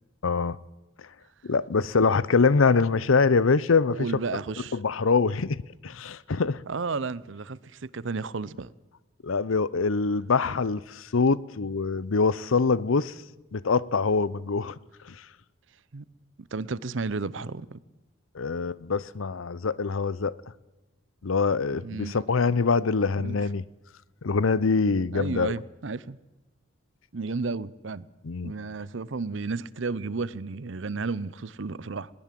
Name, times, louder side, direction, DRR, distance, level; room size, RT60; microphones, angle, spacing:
voice 1, 0.2-0.6 1.4-4.1 4.7-6.6 9.2-13.1 13.5-14.8 15.0-15.2 18.3-20.4 21.2-23.6 24.2-25.6 28.2-28.5, left 4 dB, 80° left, 0.7 m, -24 dB
voice 2, 3.9-4.8 6.7-8.7 15.9-16.0 16.4-17.8 21.8-22.2 23.2-23.4 25.1-26.2 27.1-28.1 28.4-32.1, right 4 dB, 65° right, 0.7 m, -32 dB
21.0 x 18.5 x 7.6 m
head